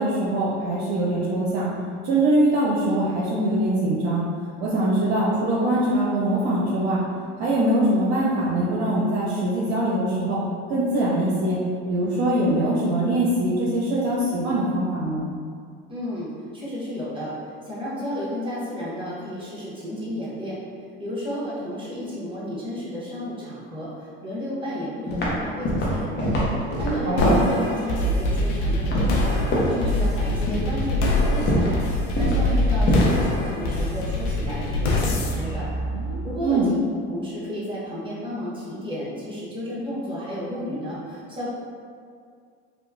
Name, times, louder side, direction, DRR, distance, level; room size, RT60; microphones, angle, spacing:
voice 1, 0.0-1.7 2.0-4.2 4.6-7.0 7.4-10.4 10.7-11.6 11.9-15.2 27.1-27.4 36.4-36.7, right 1 dB, 70° right, -7 dB, 0.6 m, -22 dB
voice 2, 15.9-17.3 17.6-20.6 21.0-26.3 26.8-31.8 32.1-35.7 36.2-36.6 37.1-41.5, equal, 15° right, -8 dB, 1.0 m, -32 dB
sound 1, 25.1-25.4 25.6-27.5 28.9-29.3 29.5-29.8 30.5-30.8 31.3-31.8 32.2-32.5 32.8-33.2, equal, 35° left, 0.7 m, -23 dB
sound 2, 27.2-36.6, left 1 dB, 75° left, 0.5 m, -24 dB
2.9 x 2.2 x 2.3 m, 2.2 s
supercardioid pair, 85°, 31 cm